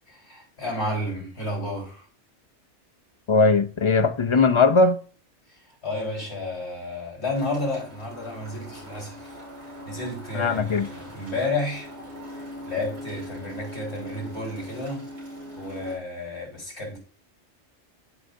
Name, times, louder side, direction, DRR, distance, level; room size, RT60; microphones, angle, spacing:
voice 1, 0.1-2.1 5.5-11.9 12.4-15.1 15.6-17.0, left 2 dB, 60° left, 4.4 m, -32 dB
voice 2, 3.3-5.0 10.3-10.9, left 3 dB, 35° left, 0.5 m, -19 dB
sound 1, 7.3-16.0, left 1 dB, 70° right, 3.6 m, -40 dB
12.5 x 5.0 x 2.6 m
omnidirectional pair, 1.2 m